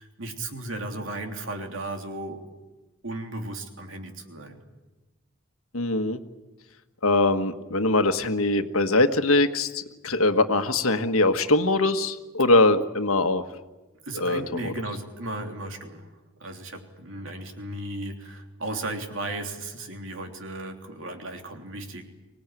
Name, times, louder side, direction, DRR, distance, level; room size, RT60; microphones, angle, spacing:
voice 1, 0.0-2.4 3.0-4.6 14.0-16.1 16.4-22.0, right 2 dB, 65° right, 3 dB, 3.3 m, -35 dB
voice 2, 5.7-6.2 7.0-13.4 14.2-14.7, left 2 dB, 85° left, 8 dB, 1.6 m, -22 dB
25.0 x 19.0 x 9.3 m, 1.1 s
head